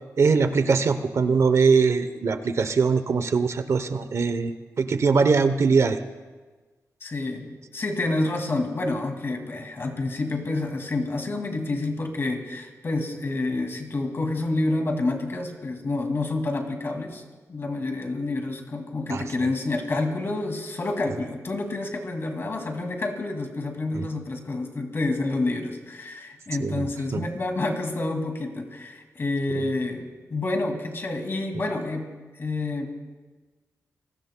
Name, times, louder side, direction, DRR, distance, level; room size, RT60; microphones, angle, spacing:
voice 1, 0.2-6.0 19.1-19.2 23.9-24.1 26.6-27.2, right 5 dB, 55° right, 10 dB, 0.8 m, -22 dB
voice 2, 7.0-17.2 17.5-32.1 32.4-32.9, left 2 dB, 45° left, 3 dB, 2.3 m, -28 dB
28.5 x 20.0 x 2.2 m, 1.3 s
wide cardioid pair, 125°, 6 cm